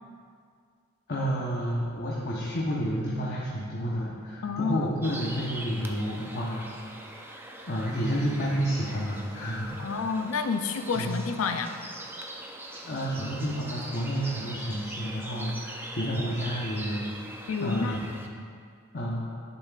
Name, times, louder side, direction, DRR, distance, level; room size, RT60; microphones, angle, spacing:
voice 1, 1.1-6.7 7.1-10.0 10.9-11.1 12.7-18.0 18.9-19.3, equal, 45° left, -5 dB, 0.9 m, -30 dB
voice 2, 4.4-4.9 9.8-11.8 17.5-18.0, left 5 dB, 70° left, 8 dB, 0.5 m, -29 dB
sound 1, 5.0-18.3, right 1 dB, 10° right, 0.4 m, -42 dB
10.0 x 7.1 x 2.4 m, 2.2 s
head